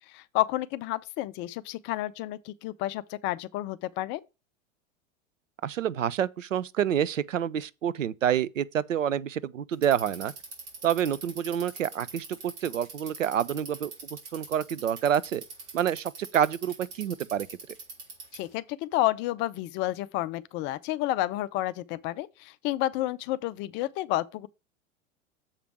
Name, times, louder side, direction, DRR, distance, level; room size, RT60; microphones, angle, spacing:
voice 1, 0.1-4.2 18.3-24.5, left 15 dB, 30° left, 0.4 m, -30 dB
voice 2, 5.6-10.3 10.8-15.4 15.7-17.5, right 9 dB, 80° right, 0.5 m, -28 dB
Bicycle, 9.7-18.5, right 4 dB, 65° right, 3.6 m, -42 dB
7.3 x 5.0 x 4.4 m
figure-of-eight pair, 90°, 38 cm